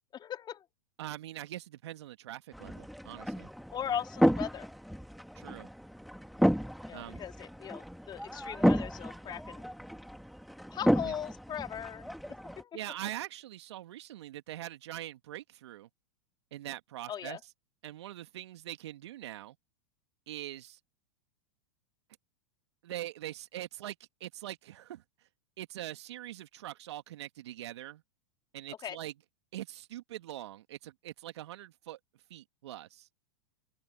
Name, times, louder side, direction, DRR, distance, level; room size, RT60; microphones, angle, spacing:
voice 1, 0.1-0.6 3.7-4.7 6.9-9.7 10.7-12.8 17.1-17.4 28.8-29.0, left 9 dB, 30° left, 4.0 m, -39 dB
voice 2, 1.0-3.5 5.4-5.7 6.9-7.2 11.0-11.1 12.7-15.9 16.5-17.4 17.8-19.6 20.3-20.8 22.8-25.0 25.6-28.0 28.5-29.1 29.5-32.0 32.3-33.1, right 14 dB, 70° right, 2.4 m, -43 dB
sound 1, 2.5-12.6, equal, ahead, 2.2 m, -32 dB
open air
hypercardioid pair, 100°, 15 cm